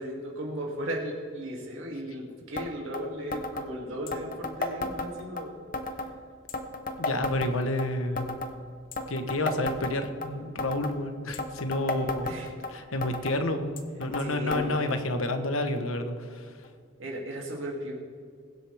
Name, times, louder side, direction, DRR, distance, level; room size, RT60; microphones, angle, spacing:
voice 1, 0.0-5.6 11.9-12.5 14.2-14.8 17.0-17.9, equal, 75° right, -1 dB, 2.6 m, -36 dB
sound 1, 2.6-2.7 2.9-3.0 3.3-3.7 4.1-5.4 5.7-6.1 6.5-7.9 8.2-8.5 8.9-10.3 10.6-11.0 11.3-12.7 13.0-13.4 13.8-14.2 14.5-14.6 14.9-15.0 15.8-15.9 16.6-16.7, left 2 dB, 45° left, 0.9 m, -33 dB
voice 2, 7.0-8.4 9.1-12.3 12.7-16.6, left 1 dB, 90° left, 8 dB, 1.1 m, -30 dB
22.0 x 7.9 x 3.5 m, 2.2 s
head